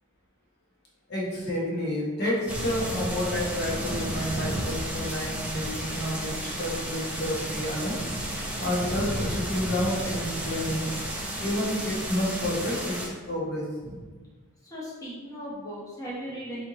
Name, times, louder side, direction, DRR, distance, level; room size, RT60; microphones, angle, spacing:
voice 1, 1.1-8.0 8.6-10.9 11.4-14.0, left 1 dB, 45° left, -5 dB, 1.0 m, -30 dB
sound 1, 2.5-13.1, right 1 dB, 5° right, 0.5 m, -32 dB
voice 2, 14.6-16.6, equal, 15° left, -7 dB, 1.0 m, -37 dB
4.4 x 2.8 x 3.8 m, 1.3 s
head